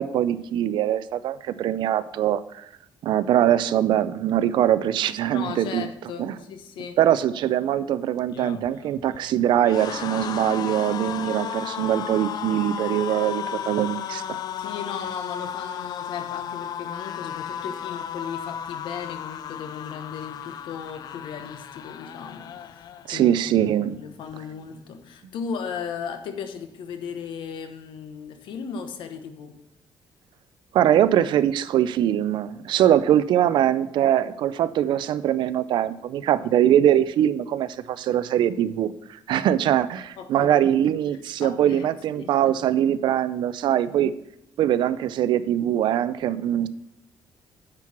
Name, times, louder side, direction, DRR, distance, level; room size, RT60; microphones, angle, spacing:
voice 1, 0.0-2.6 3.0-5.9 6.2-6.4 7.0-14.2 23.1-24.0 30.7-44.1 44.6-46.7, right 11 dB, 70° right, 15 dB, 0.4 m, -22 dB
voice 2, 5.3-7.0 14.6-29.5 40.2-40.7 41.4-41.9 42.2-42.5, left 6 dB, 80° left, 8 dB, 1.0 m, -36 dB
sound 1, 8.2-23.4 23.7-24.0 24.2-25.0, left 9 dB, 55° left, 0.4 m, -34 dB
9.5 x 4.6 x 5.9 m, 0.81 s
cardioid pair, 145°, 8 cm